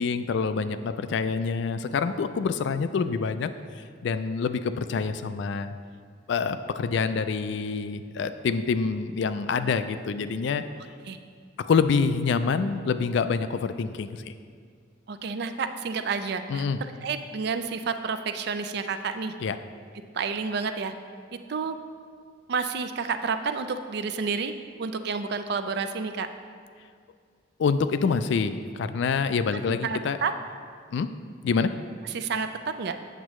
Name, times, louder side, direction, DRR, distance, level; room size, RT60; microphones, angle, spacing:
voice 1, 0.0-5.7 6.3-10.6 11.6-14.3 16.5-16.8 19.4-19.6 27.6-30.2 30.9-31.1 31.4-31.7, left 5 dB, 60° left, 11 dB, 0.3 m, -26 dB
voice 2, 15.1-16.6 17.0-19.3 20.1-20.9 21.5-21.8 22.5-24.5 24.8-26.3 29.8-30.3 32.0-32.5 32.8-33.0, right 5 dB, 55° right, 9 dB, 0.4 m, -30 dB
8.0 x 7.3 x 3.1 m, 2.1 s
head